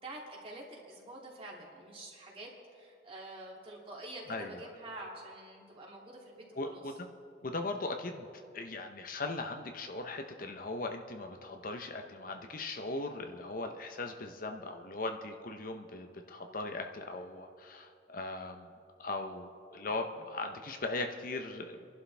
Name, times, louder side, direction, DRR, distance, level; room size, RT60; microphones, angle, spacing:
voice 1, 0.0-6.9, right 1 dB, 35° right, -3 dB, 2.8 m, -47 dB
voice 2, 4.3-4.6 6.6-7.1 7.4-8.3 8.5-18.7 19.0-21.9, left 2 dB, 50° left, 5 dB, 0.9 m, -39 dB
29.0 x 11.5 x 3.5 m, 2.4 s
head